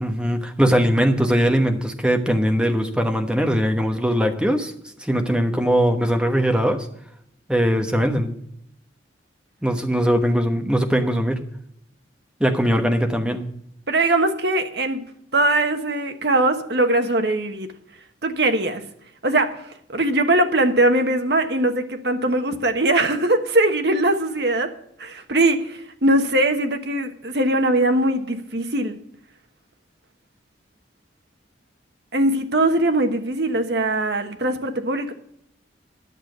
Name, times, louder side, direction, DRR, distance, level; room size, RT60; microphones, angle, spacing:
voice 1, 0.0-4.7 5.0-6.9 7.5-8.3 9.6-11.4 12.4-13.5, equal, 5° right, 5 dB, 1.1 m, -20 dB
voice 2, 13.9-15.0 15.3-17.7 18.2-18.8 19.2-24.7 25.0-29.0 32.1-35.1, right 1 dB, 60° right, 6 dB, 1.3 m, -21 dB
10.5 x 7.1 x 7.8 m, 0.72 s
head